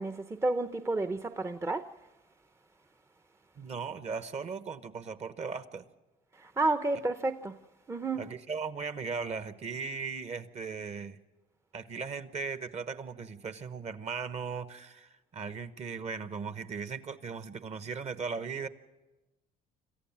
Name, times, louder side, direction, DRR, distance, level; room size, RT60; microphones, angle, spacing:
voice 1, 0.0-1.9 6.4-7.5 7.9-8.2, right 2 dB, 15° right, 0.7 m, -30 dB
voice 2, 3.6-5.9 8.1-11.2 11.7-18.7, right 5 dB, 40° right, 1.2 m, -38 dB
27.0 x 14.5 x 7.3 m
cardioid pair, 110°, 17 cm